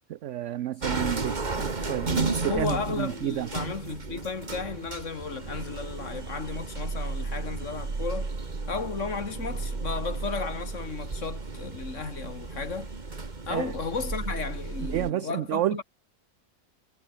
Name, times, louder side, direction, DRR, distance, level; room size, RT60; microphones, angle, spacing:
voice 1, 0.1-3.5 13.5-13.7 14.8-15.8, right 12 dB, 65° right, 0.8 m, -30 dB
sound 1, 0.8-15.1, right 3 dB, 30° right, 1.8 m, -33 dB
voice 2, 2.4-8.3 8.7-12.9 13.5-15.8, left 5 dB, 55° left, 2.2 m, -34 dB
omnidirectional pair, 1.6 m